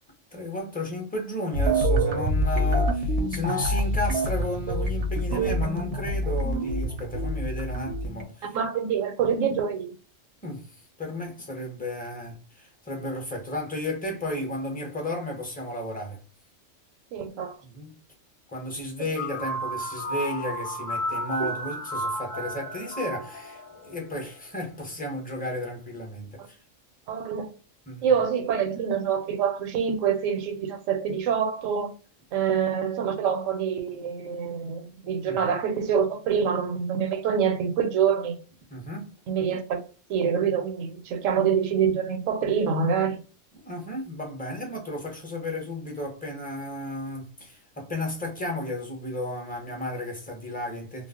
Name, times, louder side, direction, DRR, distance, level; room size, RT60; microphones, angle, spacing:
voice 1, 0.3-8.4 10.4-16.2 17.6-18.0 18.5-26.6 27.9-28.1 35.3-35.4 38.7-39.1 43.6-51.1, left 1 dB, 10° left, 0.5 m, -33 dB
sound 1, 1.5-8.2, right 1 dB, 65° right, 0.7 m, -26 dB
voice 2, 8.5-9.9 17.1-17.5 19.0-19.1 21.4-21.5 27.1-27.5 28.0-31.9 32.3-38.4 39.3-39.8 40.1-43.2, right 7 dB, 85° right, 1.0 m, -26 dB
sound 2, 19.2-24.2, equal, 50° left, 0.8 m, -33 dB
2.4 x 2.0 x 3.5 m
omnidirectional pair, 1.3 m